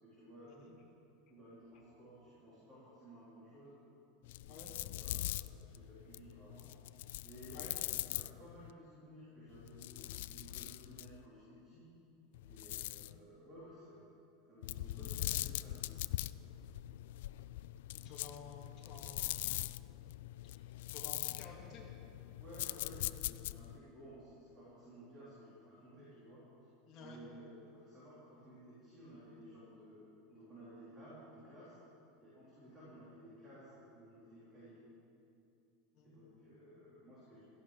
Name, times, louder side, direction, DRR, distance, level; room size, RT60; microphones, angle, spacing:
voice 1, 0.0-0.7 1.3-3.8 4.4-6.7 7.2-11.9 12.4-14.1 14.5-16.0 22.1-26.5 27.0-31.8 32.2-34.8 36.0-37.4, equal, 20° right, -10 dB, 4.2 m, -55 dB
sound 1, 4.2-8.7 9.5-11.3 12.3-13.2 14.6-23.8, left 16 dB, 70° left, 0.3 m, -42 dB
voice 2, 17.9-19.8 20.9-21.8 26.9-27.2 32.8-32.9 35.9-36.2, left 4 dB, 30° left, -3 dB, 3.0 m, -53 dB
16.5 x 14.0 x 5.2 m, 2.7 s
supercardioid pair, 165°, 0 cm